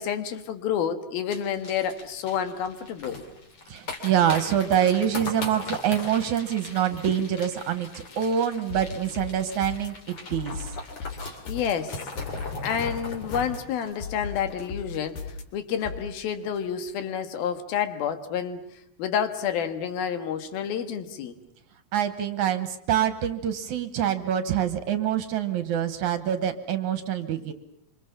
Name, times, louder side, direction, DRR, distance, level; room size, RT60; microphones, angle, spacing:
voice 1, 0.0-3.2 7.1-7.2 11.5-12.0 12.6-15.2 15.5-18.6 19.0-21.3, left 8 dB, 80° left, 10 dB, 3.4 m, -29 dB
sound 1, 1.3-15.1 15.4-15.5 15.7-16.1 16.4-16.6, left 3 dB, 40° left, 3.7 m, -39 dB
voice 2, 3.7-10.7 21.9-27.5, right 9 dB, 65° right, 11 dB, 2.4 m, -26 dB
sound 2, 8.7-9.9 10.3-11.7 12.2-13.6 14.0-15.4 15.8-16.0, left 6 dB, 60° left, 3.3 m, -36 dB
26.0 x 25.5 x 7.3 m, 0.69 s
omnidirectional pair, 4.2 m